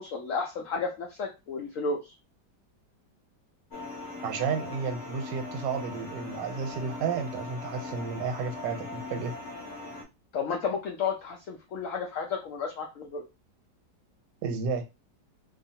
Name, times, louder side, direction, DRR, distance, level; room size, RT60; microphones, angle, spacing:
voice 1, 0.0-2.1 10.3-13.2, left 5 dB, 80° left, 0.7 m, -32 dB
sound 1, 3.7-10.0, left 3 dB, 55° left, 0.9 m, -40 dB
voice 2, 4.2-9.3 14.4-14.8, right 5 dB, 90° right, 1.3 m, -32 dB
2.7 x 2.3 x 2.7 m
omnidirectional pair, 1.9 m